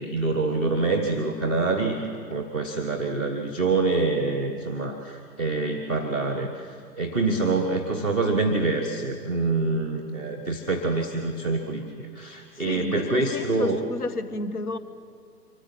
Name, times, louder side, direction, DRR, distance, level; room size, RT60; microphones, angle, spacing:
voice 1, 0.0-13.8, right 3 dB, 5° left, -2 dB, 0.5 m, -26 dB
voice 2, 12.6-14.8, left 2 dB, 65° left, 11 dB, 1.6 m, -31 dB
24.0 x 13.5 x 8.5 m, 2.3 s
figure-of-eight pair, 125°, 49 cm